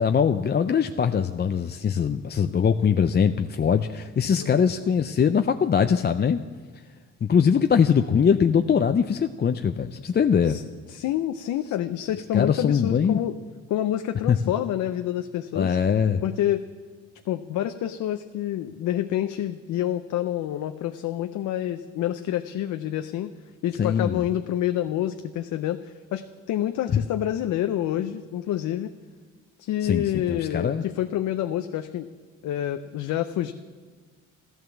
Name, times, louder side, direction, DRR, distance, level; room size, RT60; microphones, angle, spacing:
voice 1, 0.0-6.4 7.2-10.6 12.3-13.2 14.3-14.4 15.5-16.2 23.8-24.2 26.9-27.0 29.8-30.8, left 7 dB, 35° left, 7 dB, 0.6 m, -22 dB
voice 2, 10.9-13.4 13.7-15.8 16.2-16.6 17.3-23.3 23.6-28.9 29.6-32.1 32.4-33.5, left 12 dB, 75° left, 8 dB, 0.7 m, -28 dB
14.5 x 12.5 x 7.1 m, 1.4 s
cardioid pair, 90°, 30 cm